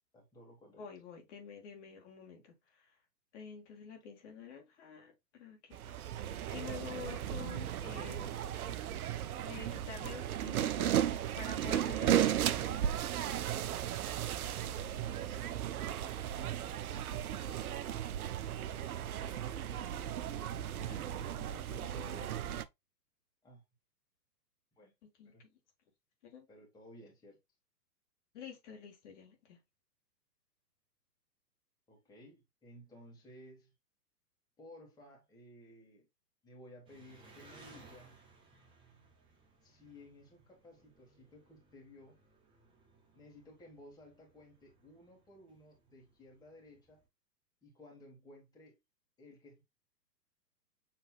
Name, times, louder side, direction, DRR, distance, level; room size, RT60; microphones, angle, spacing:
voice 1, 0.1-0.8 13.2-13.7 23.4-23.6 24.7-24.9 25.3-25.4 26.5-27.4 31.9-33.7 34.6-36.1 36.4-38.2 39.6-42.2 43.1-47.0 47.6-48.8 49.2-49.6, left 1 dB, 10° left, 1.6 m, -57 dB
voice 2, 0.7-2.9 3.3-5.9 6.5-8.3 9.4-11.1 11.4-12.8 15.2-15.7 20.9-21.0 21.4-22.5 25.2-25.5 26.2-26.5 28.3-29.6, left 6 dB, 45° left, 1.7 m, -49 dB
sound 1, 5.7-22.7, right 10 dB, 60° right, 0.5 m, -35 dB
Engine, 36.9-47.0, right 3 dB, 10° right, 0.8 m, -62 dB
7.0 x 3.1 x 2.3 m
figure-of-eight pair, 120°, 49 cm